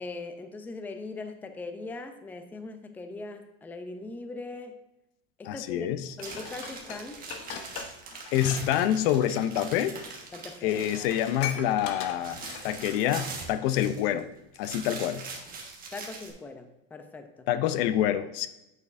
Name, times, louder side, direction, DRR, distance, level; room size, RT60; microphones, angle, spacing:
voice 1, 0.0-4.8 5.4-7.3 10.3-11.1 15.9-17.5, left 3 dB, 5° left, 7 dB, 0.4 m, -40 dB
voice 2, 5.5-6.0 8.3-9.9 10.6-14.3 14.6-15.2 17.5-18.5, left 11 dB, 70° left, 12 dB, 0.6 m, -27 dB
Dishes pots and pans, 6.2-8.6 8.9-9.1 10.0-10.1 10.4-10.5 10.7-12.9 13.4-13.5, left 7 dB, 50° left, 1.0 m, -39 dB
sound 1, 6.2-11.5 11.8-14.2 14.5-16.3, right 4 dB, 30° right, 1.4 m, -42 dB
8.4 x 6.5 x 2.5 m, 0.93 s
supercardioid pair, 130°, 31 cm